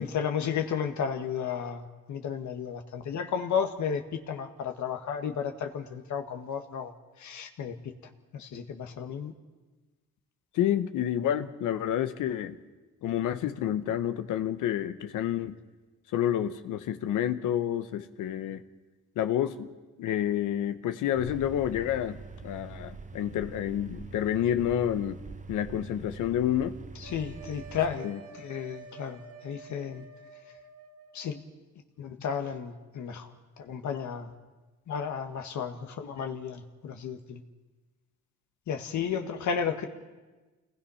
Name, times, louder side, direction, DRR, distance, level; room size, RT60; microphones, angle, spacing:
voice 1, 0.0-6.9 7.2-7.9 8.3-9.3 27.0-28.1 28.3-30.1 31.1-31.4 32.0-34.3 34.9-37.4 38.7-39.9, left 7 dB, 70° left, 5 dB, 1.8 m, -33 dB
voice 2, 10.5-12.6 13.0-15.6 16.1-18.6 19.1-19.7 20.0-25.2 25.5-26.8 28.0-28.2, left 10 dB, 85° left, 10 dB, 1.2 m, -29 dB
sound 1, 21.2-28.0, right 3 dB, 25° right, 1.0 m, -44 dB
sound 2, 27.0-31.4, right 4 dB, 50° right, 1.9 m, -49 dB
27.0 x 19.5 x 5.7 m, 1.2 s
cardioid pair, 90°, 30 cm